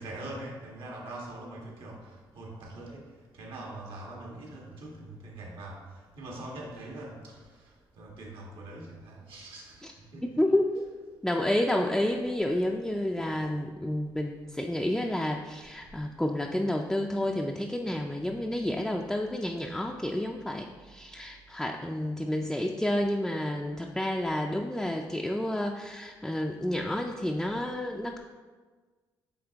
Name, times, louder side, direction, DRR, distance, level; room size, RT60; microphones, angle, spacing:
voice 1, 0.0-3.0 3.3-5.8 6.1-7.7 8.0-10.4, right 1 dB, 80° right, -2 dB, 1.6 m, -43 dB
voice 2, 10.4-10.8 11.2-28.2, left 1 dB, 5° left, 1 dB, 0.4 m, -30 dB
8.8 x 3.5 x 3.4 m, 1.4 s
cardioid pair, 100°, 9 cm